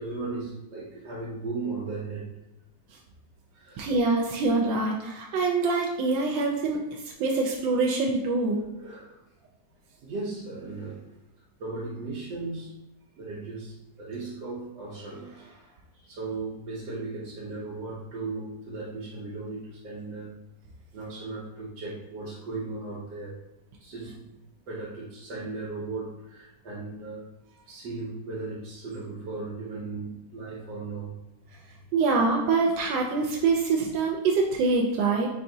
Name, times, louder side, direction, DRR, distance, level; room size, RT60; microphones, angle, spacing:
voice 1, 0.0-2.4 3.5-3.9 8.8-9.2 10.0-11.2 11.6-12.8 13.1-20.4 20.9-23.3 23.8-24.3 24.7-27.3 27.6-31.2, right 3 dB, 70° right, -6 dB, 1.5 m, -37 dB
voice 2, 3.8-6.8 7.2-8.6 31.9-35.3, right 3 dB, 90° right, -1 dB, 1.3 m, -25 dB
4.6 x 3.5 x 2.7 m, 0.98 s
omnidirectional pair, 1.9 m